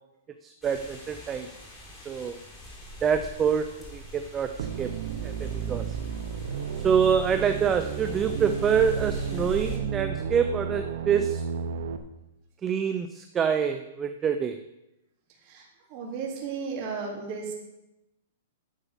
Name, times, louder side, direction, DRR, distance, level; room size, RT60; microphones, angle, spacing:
voice 1, 0.4-1.5 2.1-2.4 3.0-4.5 4.8-4.9 5.2-6.0 6.8-11.4 12.6-14.6, right 7 dB, 20° right, 8 dB, 0.6 m, -26 dB
sound 1, 0.6-9.8, equal, 10° left, 4.2 m, -44 dB
sound 2, 4.6-12.0, right 7 dB, 65° right, 1.1 m, -32 dB
voice 2, 15.9-17.5, right 5 dB, 35° right, -1 dB, 3.3 m, -34 dB
10.5 x 7.6 x 7.2 m, 0.93 s
hypercardioid pair, 150°, 0 cm